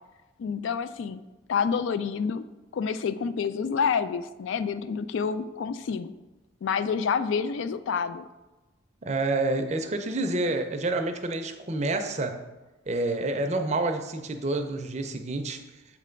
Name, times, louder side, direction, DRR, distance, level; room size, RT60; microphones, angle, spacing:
voice 1, 0.4-1.2 1.5-2.5 2.7-6.1 6.6-8.2, left 6 dB, 70° left, 12 dB, 0.3 m, -28 dB
voice 2, 9.0-12.4 12.9-15.6, right 2 dB, 35° right, 6 dB, 0.5 m, -28 dB
7.4 x 3.3 x 5.1 m, 1.1 s
head